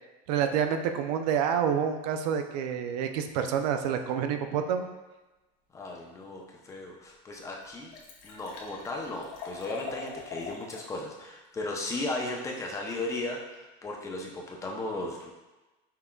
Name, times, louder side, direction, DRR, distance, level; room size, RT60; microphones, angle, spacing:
voice 1, 0.3-4.9, right 8 dB, 80° right, 7 dB, 0.5 m, -28 dB
voice 2, 5.7-7.9 8.2-15.3, left 2 dB, 15° left, 0 dB, 0.6 m, -36 dB
Liquid, 6.8-6.9 7.3-7.4 7.6-10.9 11.2-11.3, left 5 dB, 60° left, 0.9 m, -43 dB
5.7 x 3.6 x 2.3 m, 1.1 s
supercardioid pair, 145°, 21 cm